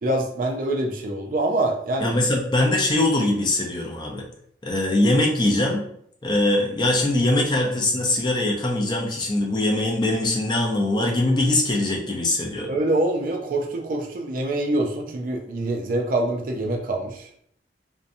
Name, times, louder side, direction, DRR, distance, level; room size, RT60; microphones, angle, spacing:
voice 1, 0.0-2.1 12.7-17.3, right 1 dB, 45° right, 2 dB, 0.4 m, -25 dB
voice 2, 2.0-4.2 4.6-5.8 6.2-12.7, left 1 dB, 25° left, -1 dB, 0.4 m, -22 dB
2.6 x 2.1 x 2.5 m, 0.67 s
head